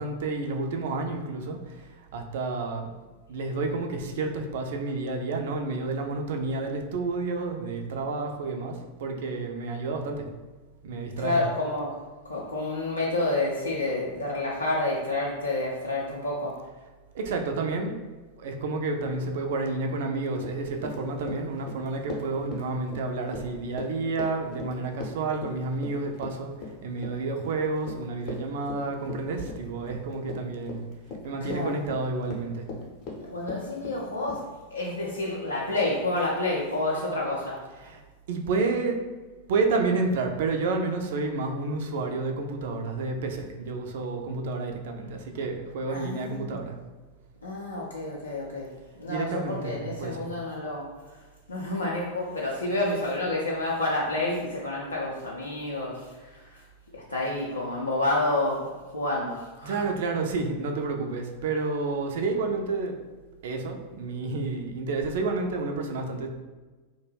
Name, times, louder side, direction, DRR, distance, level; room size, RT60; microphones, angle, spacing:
voice 1, 0.0-1.6 2.1-2.9 3.3-10.3 10.8-11.4 17.1-17.9 18.4-26.5 26.8-30.8 31.2-32.7 37.8-38.0 38.3-39.0 39.5-46.8 49.1-50.3 59.7-63.0 63.4-66.3, right 3 dB, 55° right, 3 dB, 0.3 m, -30 dB
voice 2, 11.2-12.0 12.2-16.6 31.4-31.8 33.2-37.6 45.9-46.6 47.4-48.7 49.0-51.2 51.5-56.6 56.9-59.8, left 2 dB, 75° left, -5 dB, 0.4 m, -29 dB
Run, 20.3-34.4, left 3 dB, 35° left, 0.6 m, -40 dB
2.2 x 2.1 x 3.2 m, 1.3 s
figure-of-eight pair, 90°, 0 cm